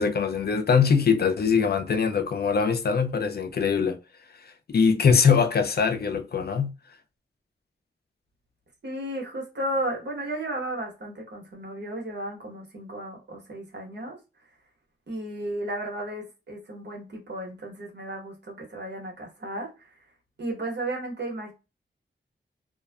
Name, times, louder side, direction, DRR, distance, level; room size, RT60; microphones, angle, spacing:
voice 1, 0.0-4.0 4.7-6.7, left 6 dB, 55° left, 0.4 m, -22 dB
voice 2, 8.8-14.2 15.1-19.9 20.4-21.5, right 1 dB, 65° right, 1.0 m, -34 dB
2.5 x 2.3 x 2.2 m
wide cardioid pair, 100°, 19 cm